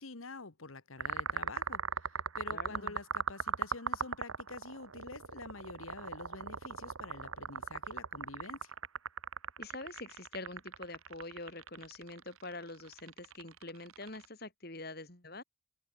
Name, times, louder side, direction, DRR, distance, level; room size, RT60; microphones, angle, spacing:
voice 1, 0.0-8.7, left 3 dB, 80° left, 1.6 m, -47 dB
sound 1, 1.0-14.3, right 6 dB, 85° right, 1.4 m, -38 dB
voice 2, 2.5-3.0 9.6-15.4, left 2 dB, 45° left, 3.5 m, -45 dB
open air
head